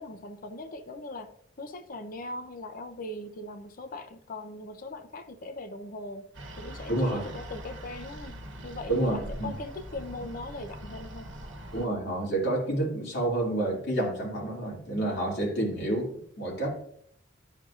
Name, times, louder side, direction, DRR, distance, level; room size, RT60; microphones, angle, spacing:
voice 1, 0.0-1.3 1.6-6.3 6.6-11.3, left 2 dB, 45° left, 7 dB, 0.7 m, -40 dB
sound 1, 6.3-11.9, equal, 70° right, 1.2 m, -42 dB
voice 2, 6.9-7.2 8.9-9.5 11.7-16.1 16.4-16.7, right 1 dB, 65° left, -4 dB, 2.4 m, -29 dB
11.5 x 4.5 x 2.4 m, 0.66 s
head